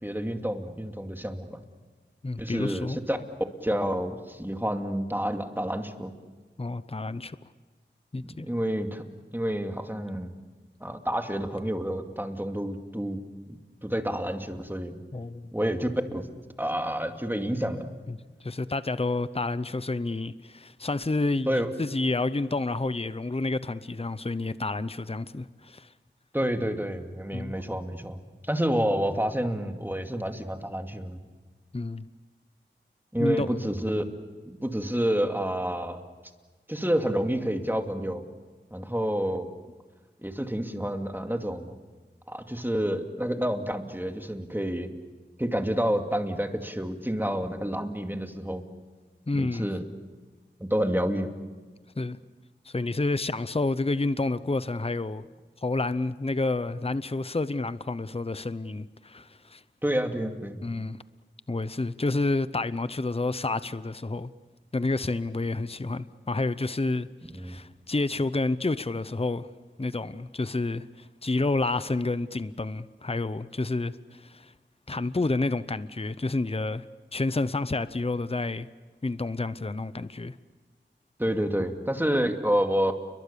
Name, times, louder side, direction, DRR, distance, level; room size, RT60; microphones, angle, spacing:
voice 1, 0.0-1.6 2.4-3.2 3.6-6.1 8.4-9.0 9.3-10.3 10.8-13.2 13.8-15.0 15.5-16.3 16.6-17.9 21.5-21.7 26.3-31.2 33.1-34.0 34.4-36.0 36.7-38.2 38.7-39.5 40.2-41.7 42.3-44.9 45.4-48.6 49.3-49.9 50.6-51.4 59.8-60.6 67.3-67.6 81.2-82.9, equal, 10° right, 2.5 m, -29 dB
voice 2, 2.2-3.0 6.6-7.4 8.1-8.5 15.1-15.5 18.1-25.9 27.3-27.6 31.7-32.1 33.2-33.6 49.3-49.7 52.0-52.2 52.7-55.2 55.6-59.6 60.6-61.0 61.5-64.3 64.7-67.1 67.3-69.5 69.8-74.5 74.9-76.8 77.1-78.7 79.0-80.4, left 2 dB, 30° left, 0.8 m, -29 dB
30.0 x 23.0 x 7.0 m
wide cardioid pair, 40°, 19 cm